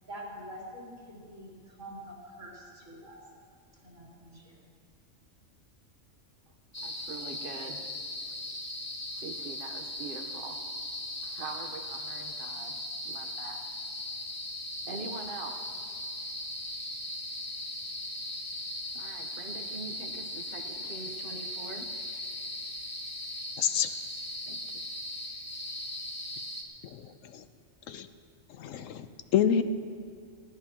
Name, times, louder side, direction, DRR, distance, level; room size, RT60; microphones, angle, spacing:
voice 1, 0.1-3.2 3.8-4.6, equal, 90° right, -5 dB, 3.8 m, -45 dB
sound 1, 6.7-26.6, left 1 dB, 15° left, 1.3 m, -38 dB
voice 2, 6.8-7.8 9.2-10.6 11.2-13.6 14.9-15.6 18.9-21.9 23.6-24.0 24.5-24.6, right 4 dB, 45° right, 4 dB, 1.2 m, -43 dB
voice 3, 23.6-23.9 27.3-27.4 27.9-28.1 28.6-29.1 29.3-29.6, left 8 dB, 90° left, 11 dB, 1.1 m, -26 dB
20.5 x 16.0 x 2.9 m, 2.3 s
omnidirectional pair, 1.3 m